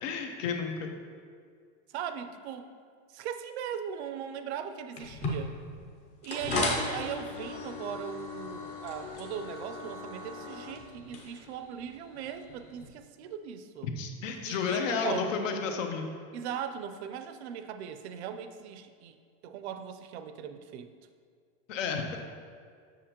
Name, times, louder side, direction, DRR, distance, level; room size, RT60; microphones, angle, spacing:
voice 1, 0.0-0.9 13.8-16.1 21.7-22.2, left 5 dB, 75° left, 4 dB, 1.0 m, -32 dB
voice 2, 1.9-2.7 3.1-5.6 6.2-13.9 14.4-15.3 16.3-19.2 19.4-20.9, right 8 dB, 55° right, 9 dB, 0.5 m, -39 dB
sound 1, 5.0-12.9, left 2 dB, 20° left, 0.5 m, -37 dB
7.4 x 6.6 x 2.9 m, 2.1 s
supercardioid pair, 175°, 39 cm